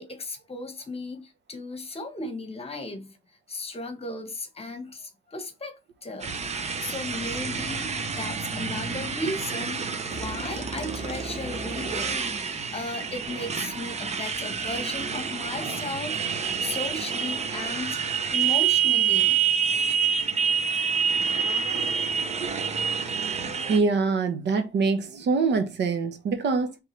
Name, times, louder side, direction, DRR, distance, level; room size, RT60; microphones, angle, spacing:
voice 1, 0.0-3.2 3.5-9.8 10.1-16.2 16.6-18.0 18.3-19.4, left 2 dB, 30° left, 1.4 m, -36 dB
Motorcycle, 6.2-23.8, right 7 dB, 35° right, 0.8 m, -28 dB
sound 1, 10.1-13.2, equal, 15° right, 1.7 m, -41 dB
voice 2, 23.7-26.8, right 4 dB, 60° right, 1.0 m, -25 dB
4.6 x 3.6 x 3.2 m
cardioid pair, 90°, 20 cm